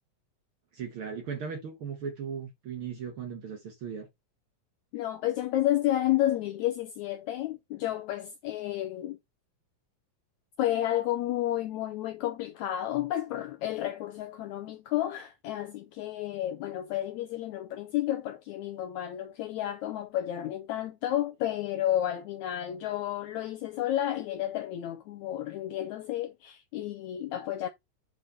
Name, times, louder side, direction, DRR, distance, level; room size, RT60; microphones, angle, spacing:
voice 1, 0.7-4.1, right 6 dB, 85° right, 1.1 m, -37 dB
voice 2, 4.9-9.2 10.6-27.7, left 13 dB, 85° left, 1.6 m, -31 dB
8.4 x 3.9 x 4.1 m
omnidirectional pair, 4.1 m